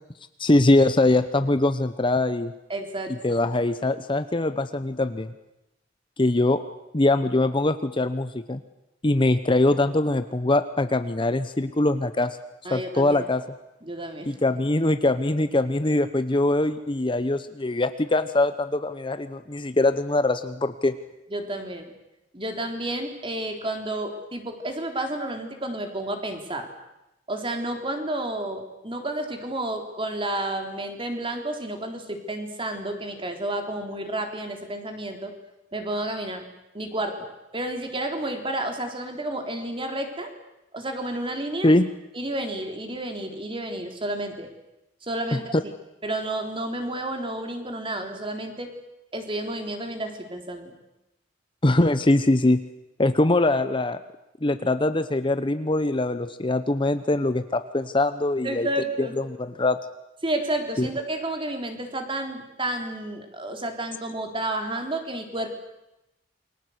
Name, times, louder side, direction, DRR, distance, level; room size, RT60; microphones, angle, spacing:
voice 1, 0.4-2.5 3.2-5.3 6.2-6.6 6.9-8.6 9.0-12.4 12.7-13.4 14.3-20.9 41.6-41.9 45.3-45.4 51.6-52.6 53.0-54.0 54.4-58.7 59.0-59.8 60.8-60.9, left 2 dB, 25° left, 11 dB, 0.9 m, -22 dB
voice 2, 2.7-3.1 12.7-13.2 13.8-14.4 21.3-21.9 22.3-26.7 27.3-35.3 35.7-36.5 36.7-37.1 37.5-40.3 40.7-41.7 42.1-44.5 45.0-45.5 46.0-48.7 49.1-50.7 58.4-59.2 60.2-65.5, right 1 dB, 30° right, 4 dB, 3.8 m, -31 dB
28.5 x 22.5 x 8.1 m, 0.92 s
head